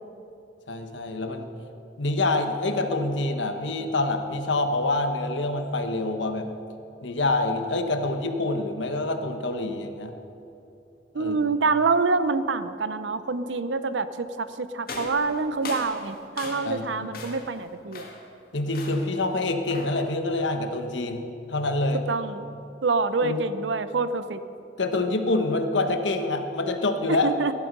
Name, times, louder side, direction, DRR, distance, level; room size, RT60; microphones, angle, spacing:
voice 1, 0.7-1.5 2.0-6.5 7.0-10.1 11.2-11.4 16.6-16.9 18.5-22.1 23.2-23.4 24.8-27.3, left 2 dB, 85° left, 6 dB, 1.2 m, -26 dB
voice 2, 11.1-18.1 22.1-22.5 22.8-24.4 27.1-27.5, right 4 dB, 85° right, 12 dB, 0.7 m, -26 dB
sound 1, 14.9-16.8 17.1-17.6 17.9-18.3 18.7-19.2 19.7-20.1, left 3 dB, 55° left, 1.9 m, -39 dB
15.5 x 11.0 x 5.4 m, 2.8 s
head